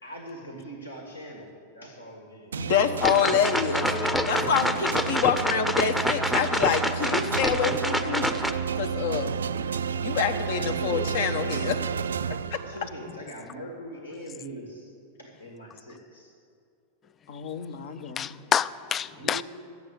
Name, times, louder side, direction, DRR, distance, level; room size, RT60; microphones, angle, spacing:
voice 1, 0.0-2.9 10.0-11.4 12.7-14.9 15.2-16.3 17.0-17.1 19.0-19.4, right 1 dB, 85° left, 1 dB, 2.0 m, -42 dB
sound 1, 2.5-13.1, right 6 dB, 70° right, 0.3 m, -31 dB
voice 2, 2.6-3.9 4.3-8.4 8.7-9.4 10.0-11.8 12.3-12.6 17.3-18.4, left 7 dB, 55° left, 8 dB, 0.9 m, -27 dB
sound 2, 3.0-8.5, equal, 5° left, 0.7 m, -27 dB
voice 3, 3.9-4.5 18.2-19.4, left 8 dB, 25° left, 17 dB, 0.4 m, -28 dB
13.0 x 8.3 x 8.1 m, 2.5 s
figure-of-eight pair, 90°, 0 cm